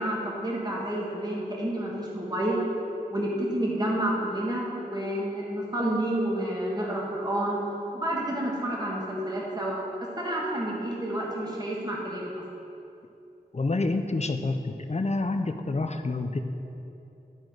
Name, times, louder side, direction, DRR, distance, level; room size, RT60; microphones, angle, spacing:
voice 1, 0.0-2.6 3.1-7.6 7.9-12.4, right 1 dB, 25° right, -4 dB, 1.5 m, -29 dB
voice 2, 13.5-16.4, left 2 dB, 40° left, 7 dB, 0.5 m, -28 dB
12.5 x 4.4 x 4.7 m, 2.8 s
wide cardioid pair, 60°, 17 cm